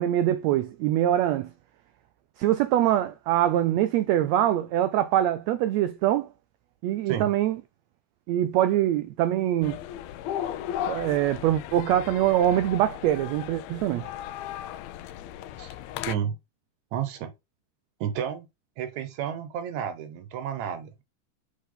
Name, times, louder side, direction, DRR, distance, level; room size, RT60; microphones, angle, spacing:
voice 1, 0.0-1.5 2.4-6.3 6.8-7.6 8.3-9.8 10.9-14.1, right 12 dB, 85° right, 1.5 m, -24 dB
sound 1, 9.6-16.2, left 11 dB, 90° left, 1.5 m, -36 dB
voice 2, 16.1-16.4 16.9-17.3 18.0-18.5 18.8-21.0, right 9 dB, 70° right, 2.0 m, -31 dB
6.8 x 4.5 x 3.8 m
omnidirectional pair, 3.6 m